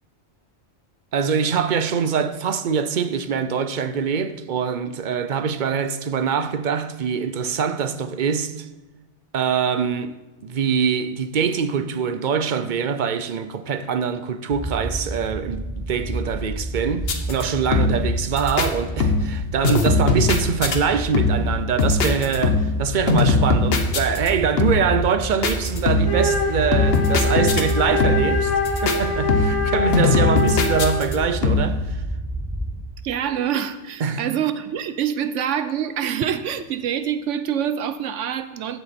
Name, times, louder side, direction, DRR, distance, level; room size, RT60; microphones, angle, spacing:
voice 1, 1.1-8.7 9.3-10.1 10.4-28.5 28.8-32.0 34.0-34.2, right 6 dB, 50° right, 0.7 m, -24 dB
sound 1, 14.5-32.8, right 1 dB, 5° left, 1.0 m, -30 dB
sound 2, 17.0-17.4 17.7-18.1 18.4-18.7 19.0-19.4 19.6-20.8 21.1-21.5 21.8-22.8 23.1-24.3 24.6-25.0 25.4-26.2 26.7-27.7 28.0-28.4 28.6-29.0 29.3-29.7 29.9-31.1 31.4-31.8, left 3 dB, 60° left, 1.2 m, -20 dB
Wind instrument woodwind instrument, 26.0-31.2, left 2 dB, 85° left, 1.9 m, -24 dB
voice 2, 33.0-38.8, right 9 dB, 85° right, 1.1 m, -26 dB
15.0 x 7.1 x 4.3 m
omnidirectional pair, 1.2 m